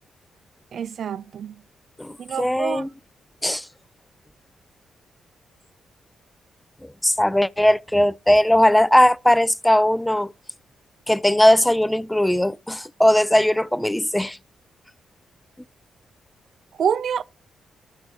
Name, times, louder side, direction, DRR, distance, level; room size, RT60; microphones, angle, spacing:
voice 1, 0.7-1.6 2.2-2.9 16.8-17.2, right 8 dB, 65° right, 0.4 m, -26 dB
voice 2, 2.0-2.9 3.4-3.7 6.8-10.3 11.1-14.4, left 1 dB, 10° left, 0.3 m, -19 dB
11.5 x 4.6 x 4.0 m
supercardioid pair, 55°, 0 cm